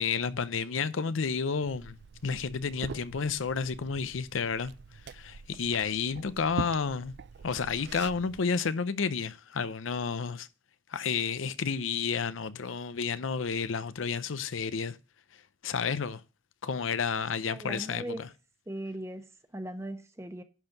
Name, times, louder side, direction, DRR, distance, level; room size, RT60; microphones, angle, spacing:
voice 1, 0.0-4.7 5.1-7.1 7.4-10.5 10.9-15.0 15.6-16.2 16.6-18.3, left 5 dB, 90° left, 0.6 m, -31 dB
Liquid, 1.6-8.4, right 5 dB, 60° right, 0.4 m, -43 dB
voice 2, 17.5-18.2 18.7-19.3 19.5-20.4, right 1 dB, 15° right, 1.0 m, -38 dB
11.0 x 4.5 x 6.5 m
head